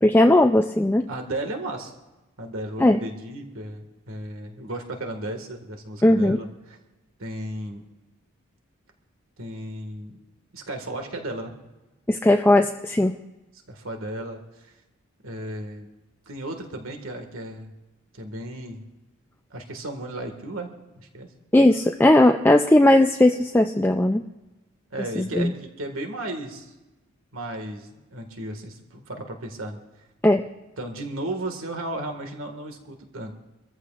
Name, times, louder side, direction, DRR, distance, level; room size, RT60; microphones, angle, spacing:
voice 1, 0.0-1.1 2.8-3.0 6.0-6.4 12.1-13.1 21.5-24.2 25.2-25.5 30.2-30.4, left 1 dB, 10° left, 5 dB, 0.4 m, -17 dB
voice 2, 1.1-1.9 2.4-6.8 7.2-7.8 9.4-10.2 10.5-11.5 13.7-14.7 15.2-15.9 16.3-17.7 18.1-18.9 19.5-20.7 21.0-21.3 24.9-26.7 27.3-29.8 30.8-33.3, right 1 dB, 70° right, 4 dB, 1.8 m, -34 dB
25.5 x 14.5 x 2.5 m, 1.1 s
head